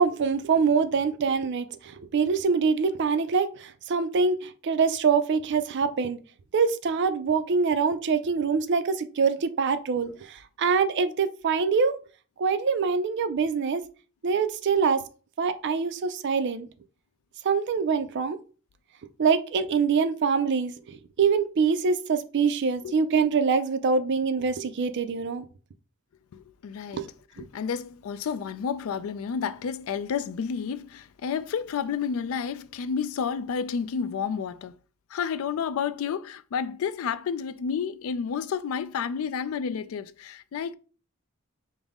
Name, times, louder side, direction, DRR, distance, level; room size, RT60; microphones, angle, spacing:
voice 1, 0.0-1.7 2.1-3.5 3.9-4.4 4.6-6.2 6.5-10.1 10.6-11.9 12.4-13.8 14.2-15.0 15.4-16.7 17.5-18.4 19.2-20.7 21.2-25.4 27.0-27.1, right 5 dB, 55° right, 0.4 m, -24 dB
voice 2, 26.3-27.0 27.4-34.7 35.1-40.7, left 6 dB, 70° left, 0.3 m, -30 dB
5.2 x 2.0 x 3.5 m
head